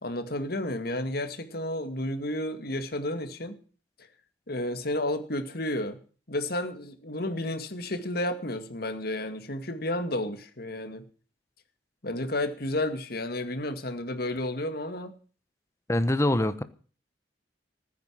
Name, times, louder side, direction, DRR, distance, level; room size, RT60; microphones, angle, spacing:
voice 1, 0.0-3.6 4.5-6.0 6.3-11.0 12.0-15.2, left 1 dB, 55° left, 2.1 m, -31 dB
voice 2, 15.9-16.6, left 1 dB, 15° left, 1.0 m, -24 dB
15.0 x 9.4 x 7.5 m
head